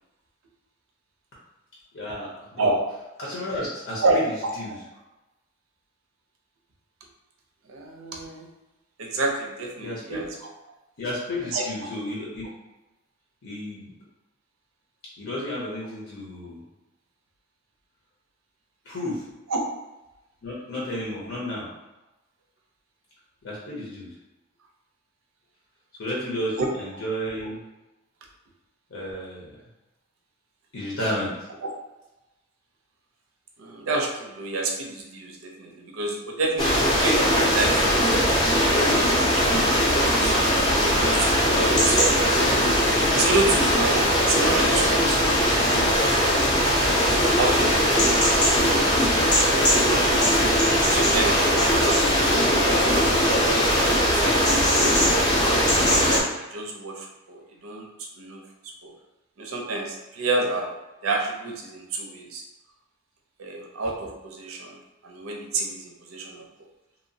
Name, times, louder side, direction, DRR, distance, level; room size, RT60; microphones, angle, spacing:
voice 1, 1.9-2.7 3.2-4.7 9.8-10.2 11.0-12.5 13.4-13.9 15.2-16.6 18.8-19.2 20.4-21.7 23.4-24.1 26.0-27.6 28.9-29.6 30.7-31.3, left 1 dB, 70° left, -5 dB, 0.7 m, -32 dB
voice 2, 7.7-8.5 9.0-10.3 11.5-11.6 19.5-19.6 26.3-26.7 31.6-31.7 33.6-38.4 38.9-39.6 39.9-40.3 40.8-42.6 43.1-45.4 45.8-46.0 46.8-48.5 48.9-49.3 50.1-55.5 56.5-58.9 59.4-60.7 61.0-62.4 63.4-64.8 65.0-66.5, right 2 dB, 80° right, 1 dB, 0.5 m, -30 dB
sound 1, 36.6-56.2, equal, 20° left, 0.5 m, -20 dB
2.9 x 2.0 x 2.6 m, 0.99 s
head